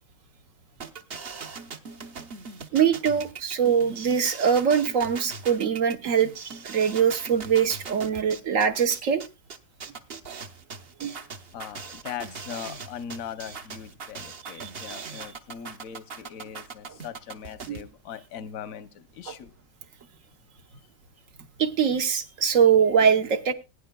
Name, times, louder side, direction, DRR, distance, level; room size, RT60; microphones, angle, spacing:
sound 1, 0.8-17.8, right 5 dB, 50° right, 1.1 m, -40 dB
voice 1, 2.7-6.3 6.6-9.2 11.0-11.1 14.4-15.3 16.9-17.0 17.7-17.8 19.3-19.4 21.6-23.5, right 7 dB, 75° right, 9 dB, 1.4 m, -23 dB
voice 2, 11.5-19.5, left 8 dB, 85° left, 12 dB, 1.2 m, -40 dB
21.0 x 9.9 x 2.2 m, 0.26 s
omnidirectional pair, 1.4 m